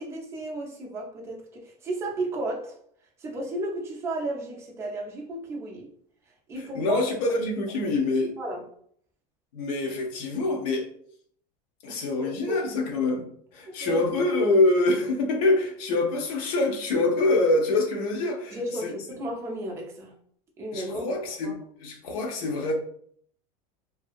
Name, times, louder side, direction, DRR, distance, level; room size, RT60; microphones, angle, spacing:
voice 1, 0.0-2.8 3.2-5.9 6.5-7.0 8.4-8.6 11.9-12.0 12.3-12.6 13.8-14.1 18.5-20.1 20.6-21.1 21.4-21.5, right 1 dB, 15° right, 0 dB, 0.4 m, -33 dB
voice 2, 6.7-8.3 9.5-10.8 11.8-13.3 13.5-18.9 20.7-22.7, left 2 dB, 85° left, 1 dB, 0.7 m, -25 dB
2.6 x 2.5 x 2.4 m, 0.62 s
cardioid pair, 175°, 19 cm